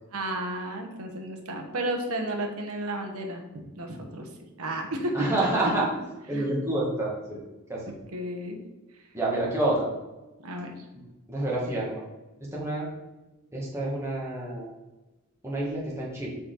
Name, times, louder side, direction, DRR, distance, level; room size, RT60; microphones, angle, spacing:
voice 1, 0.1-3.5 3.8-4.3 4.6-5.3 6.3-6.5 8.1-8.6 10.4-10.8, right 1 dB, 75° right, 3 dB, 1.3 m, -32 dB
voice 2, 5.1-5.9 6.3-7.4 7.7-7.8 9.1-9.9 11.3-12.0 12.5-12.9 13.5-14.7 15.4-16.3, right 1 dB, 10° right, -5 dB, 1.9 m, -28 dB
7.6 x 4.3 x 4.0 m, 1.1 s
head